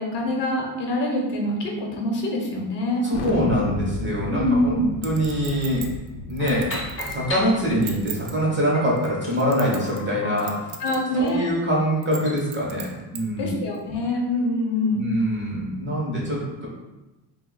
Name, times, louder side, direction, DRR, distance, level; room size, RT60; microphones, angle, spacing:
voice 1, 0.0-3.0 4.3-4.9 10.8-11.5 13.4-15.1, left 1 dB, 55° left, 0 dB, 0.8 m, -24 dB
voice 2, 3.0-5.9 6.3-6.7 7.1-10.7 11.2-13.5 14.9-16.7, equal, 25° right, -4 dB, 0.5 m, -24 dB
Thunder, 3.1-8.3, left 2 dB, 90° left, 0.6 m, -34 dB
Chink clink, 5.0-7.2 7.7-8.3 9.0-10.1 10.4-11.0 11.3-11.4 12.0-13.2 13.7-13.8, right 10 dB, 85° right, 0.6 m, -36 dB
sound 1, 6.4-8.1 8.7-12.5, left 2 dB, 25° left, 0.5 m, -36 dB
2.6 x 2.0 x 3.7 m, 1.1 s
cardioid pair, 125°, 50 cm